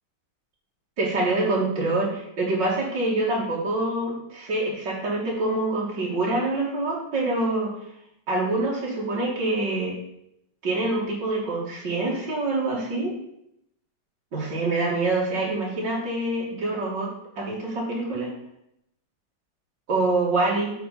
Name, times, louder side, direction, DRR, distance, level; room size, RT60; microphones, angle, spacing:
voice 1, 1.0-7.7 8.3-9.9 10.6-13.1 14.3-17.1 17.4-18.3 19.9-20.7, right 2 dB, 75° right, -4 dB, 3.1 m, -25 dB
11.0 x 4.1 x 6.8 m, 0.79 s
omnidirectional pair, 1.9 m